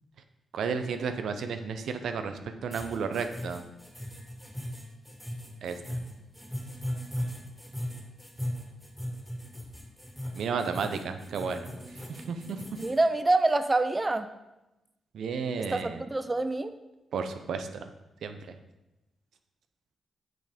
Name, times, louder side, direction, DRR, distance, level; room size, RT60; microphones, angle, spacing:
voice 1, 0.5-3.6 5.6-5.8 10.3-11.7 12.1-12.6 15.1-16.0 17.1-17.7 18.2-18.6, right 5 dB, 80° right, 7 dB, 0.7 m, -32 dB
sound 1, 2.7-13.0, equal, ahead, 2.0 m, -38 dB
voice 2, 12.8-14.3 15.7-16.7, right 2 dB, 25° right, 10 dB, 0.5 m, -26 dB
6.8 x 6.3 x 5.0 m, 0.97 s
cardioid pair, 70°, 0 cm